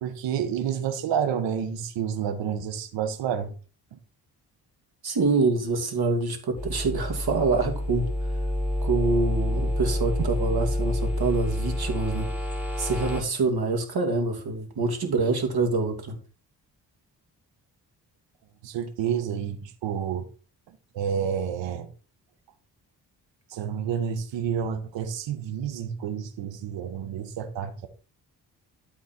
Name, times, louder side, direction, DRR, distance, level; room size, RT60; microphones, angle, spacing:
voice 1, 0.0-3.5 3.9-4.0 10.2-10.3 18.6-20.3 20.7-21.9 23.5-27.9, right 8 dB, 75° right, 1.5 m, -29 dB
voice 2, 5.0-8.1 8.8-12.3 12.8-16.2, right 3 dB, 55° right, 2.8 m, -26 dB
sound 1, 6.6-13.2, left 1 dB, 5° right, 3.4 m, -28 dB
13.0 x 4.5 x 4.5 m
supercardioid pair, 45°, 44 cm